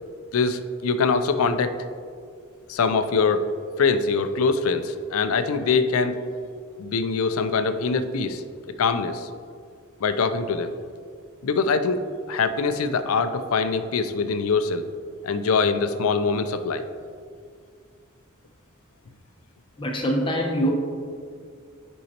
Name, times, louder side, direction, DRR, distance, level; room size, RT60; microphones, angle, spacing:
voice 1, 0.3-1.7 2.7-3.4 3.8-6.2 6.8-8.4 8.8-9.3 10.0-10.7 11.4-12.0 12.3-14.9 15.2-16.8, left 4 dB, 75° left, 9 dB, 0.4 m, -23 dB
voice 2, 19.8-20.7, equal, 25° left, 1 dB, 0.9 m, -24 dB
9.3 x 5.4 x 2.9 m, 2.2 s
head